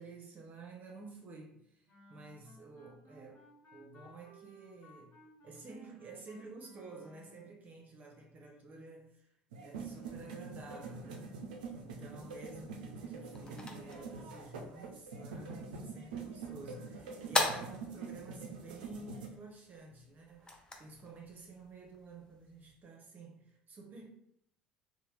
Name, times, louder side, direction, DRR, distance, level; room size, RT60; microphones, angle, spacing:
voice 1, 0.0-3.4 3.7-9.3 9.6-11.3 11.8-24.1, right 3 dB, 40° right, 1 dB, 0.7 m, -51 dB
Wind instrument woodwind instrument, 1.9-7.6, equal, 40° left, 1.3 m, -60 dB
sound 1, 9.5-19.3, right 4 dB, 85° right, 0.4 m, -45 dB
sound 2, 12.9-22.7, left 2 dB, 20° left, 0.6 m, -42 dB
2.9 x 2.1 x 3.2 m, 0.72 s
hypercardioid pair, 65°, 4 cm